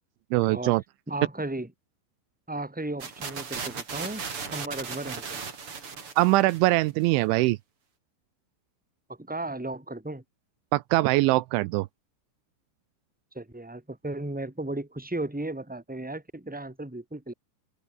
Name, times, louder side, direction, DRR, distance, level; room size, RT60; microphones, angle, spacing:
voice 1, 0.3-0.8 6.2-7.6 10.7-11.9, right 19 dB, 80° right, 3.0 m, -22 dB
voice 2, 1.1-1.7 2.5-4.2 4.5-5.4 9.1-10.2 13.3-17.3, right 2 dB, ahead, 3.9 m, -35 dB
sound 1, 3.0-6.9, right 5 dB, 30° right, 3.3 m, -37 dB
open air
omnidirectional pair, 5.5 m